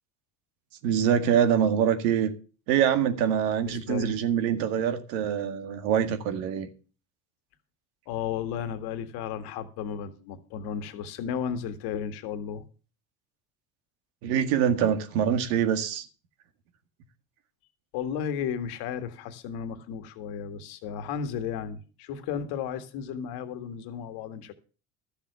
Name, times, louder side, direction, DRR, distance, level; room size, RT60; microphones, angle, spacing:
voice 1, 0.8-2.3 2.7-6.7 14.2-16.1, right 9 dB, 75° right, 2.0 m, -24 dB
voice 2, 3.7-4.2 8.1-12.6 17.9-24.5, left 8 dB, 65° left, 1.8 m, -34 dB
13.0 x 7.0 x 6.8 m
hypercardioid pair, 75°, 41 cm